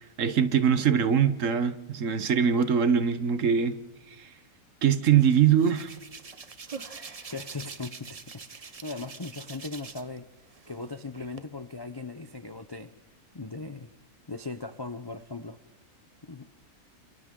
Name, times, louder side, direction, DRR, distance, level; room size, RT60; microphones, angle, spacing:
voice 1, 0.2-3.7 4.1-4.3 4.8-5.9, right 8 dB, 60° right, 1.3 m, -23 dB
Hands, 5.2-10.2 10.5-11.4, right 5 dB, 30° right, 0.7 m, -44 dB
voice 2, 7.3-10.3 10.7-12.9 13.3-13.9 14.3-15.6 16.2-16.5, left 3 dB, 35° left, 0.4 m, -38 dB
28.5 x 27.0 x 3.8 m
omnidirectional pair, 1.6 m